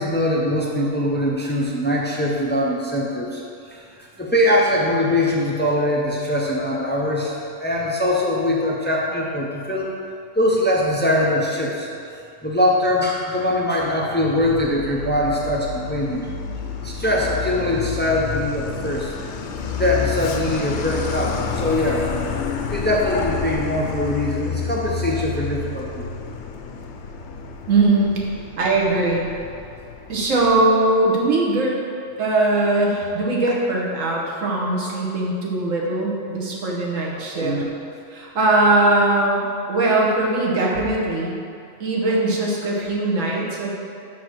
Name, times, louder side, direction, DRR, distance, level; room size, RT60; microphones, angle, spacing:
voice 1, 0.0-3.4 3.7-9.9 10.3-11.9 12.4-16.3 16.8-19.1 19.7-22.1 22.7-26.1 37.1-37.7, left 1 dB, 15° left, -2 dB, 0.4 m, -22 dB
Truck, 14.4-30.7, left 6 dB, 65° left, 0.8 m, -30 dB
voice 2, 27.7-28.2 28.6-29.3 30.1-31.8 32.2-37.6 38.1-41.4 41.8-43.7, right 2 dB, 75° right, -3 dB, 1.5 m, -20 dB
5.7 x 4.7 x 6.2 m, 2.5 s
omnidirectional pair, 1.4 m